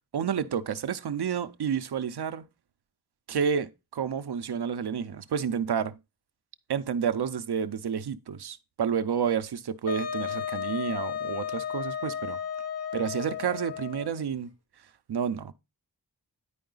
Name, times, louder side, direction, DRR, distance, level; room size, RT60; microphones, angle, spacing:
voice 1, 0.1-2.5 3.3-6.0 6.7-12.4 12.9-14.5 15.1-15.5, right 7 dB, 80° right, 0.6 m, -30 dB
Wind instrument woodwind instrument, 9.9-14.2, left 8 dB, 40° left, 0.8 m, -34 dB
9.9 x 4.7 x 3.9 m
wide cardioid pair, 90°, 39 cm